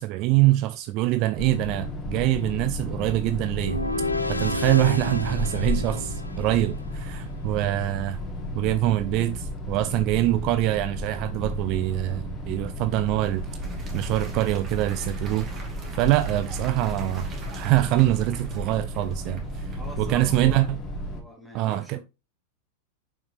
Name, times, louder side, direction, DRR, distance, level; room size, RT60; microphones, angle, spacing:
voice 1, 0.0-3.8 4.3-8.2 8.5-13.4 13.9-15.5 16.0-17.3 17.5-20.8 21.5-22.0, right 16 dB, 40° right, 0.4 m, -24 dB
sound 1, 1.4-21.2, left 1 dB, 20° left, 2.5 m, -33 dB
sound 2, 3.6-6.8, left 2 dB, 85° left, 0.6 m, -31 dB
voice 2, 6.3-6.6 19.8-20.7 21.1-22.0, equal, ahead, 2.5 m, -43 dB
Applause, 12.7-20.3, right 3 dB, 25° right, 2.4 m, -46 dB
6.6 x 5.8 x 3.1 m
figure-of-eight pair, 90°, 0 cm